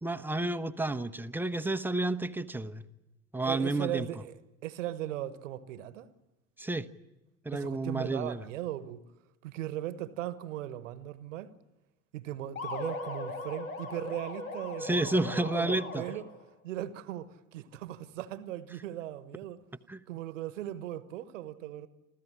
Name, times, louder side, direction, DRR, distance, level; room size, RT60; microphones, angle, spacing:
voice 1, 0.0-2.8 3.3-4.1 6.6-6.9 7.4-8.4 14.8-16.0 19.9-20.0, right 2 dB, 5° right, 0.9 m, -31 dB
voice 2, 3.4-6.1 7.5-9.0 9.4-11.5 12.1-16.2 16.6-19.6 20.1-21.9, right 13 dB, 65° right, 1.3 m, -38 dB
sound 1, 12.6-16.4, left 3 dB, 80° left, 2.0 m, -39 dB
27.0 x 15.5 x 9.9 m
figure-of-eight pair, 70°, 41 cm